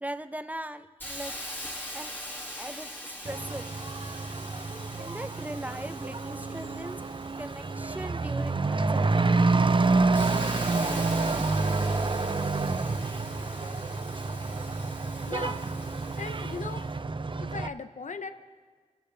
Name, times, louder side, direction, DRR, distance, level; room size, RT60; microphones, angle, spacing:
voice 1, 0.0-1.3 1.9-2.1 2.6-3.6 5.0-7.0 7.4-9.4, right 1 dB, 10° right, 10 dB, 0.8 m, -39 dB
Hiss, 1.0-8.6 9.1-16.8, left 1 dB, 15° left, 2.3 m, -43 dB
Truck / Accelerating revving vroom, 3.2-17.7, right 3 dB, 40° right, 0.6 m, -28 dB
voice 2, 15.3-15.7 16.2-16.9 17.4-18.3, left 4 dB, 80° left, 9 dB, 0.7 m, -38 dB
27.0 x 13.5 x 3.4 m, 1.5 s
wide cardioid pair, 60°, 13 cm